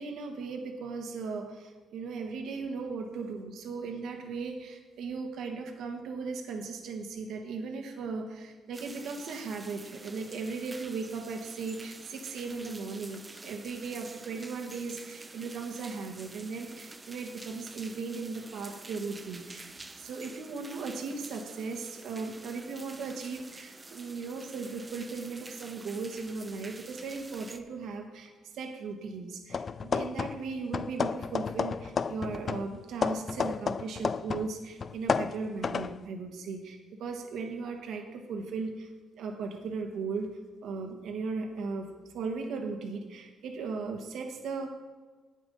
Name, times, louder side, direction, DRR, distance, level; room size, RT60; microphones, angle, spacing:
voice 1, 0.0-19.7 20.0-38.9 39.2-40.3 40.6-41.9 42.1-44.7, right 4 dB, 75° right, 4 dB, 1.4 m, -37 dB
sound 1, 8.7-27.6, right 3 dB, 20° right, 0.8 m, -48 dB
sound 2, 29.5-30.5 30.7-34.5 34.8-36.0, left 6 dB, 45° left, 0.3 m, -31 dB
9.1 x 8.7 x 5.5 m, 1.4 s
cardioid pair, 90°, 0 cm